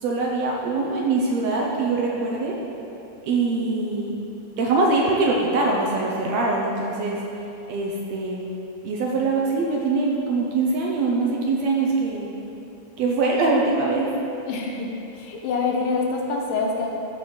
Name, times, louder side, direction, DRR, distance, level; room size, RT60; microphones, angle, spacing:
voice 1, 0.0-2.6 3.2-4.1 4.6-7.2 7.7-8.4 8.8-12.3 13.0-14.1, right 3 dB, 70° right, -2 dB, 1.7 m, -23 dB
voice 2, 14.4-16.9, left 4 dB, 85° left, 0 dB, 2.5 m, -26 dB
14.0 x 4.6 x 4.3 m, 2.9 s
omnidirectional pair, 3.6 m